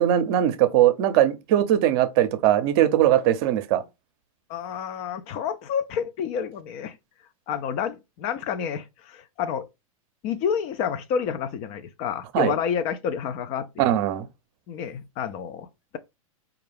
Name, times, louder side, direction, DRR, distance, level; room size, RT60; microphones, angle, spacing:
voice 1, 0.0-3.8 12.3-12.5 13.8-14.2, right 12 dB, 45° right, 0.6 m, -20 dB
voice 2, 4.5-7.0 7.5-9.7 10.2-13.9 14.7-15.7, left 7 dB, 35° left, 0.4 m, -29 dB
4.4 x 2.3 x 3.4 m
hypercardioid pair, 110°, 18 cm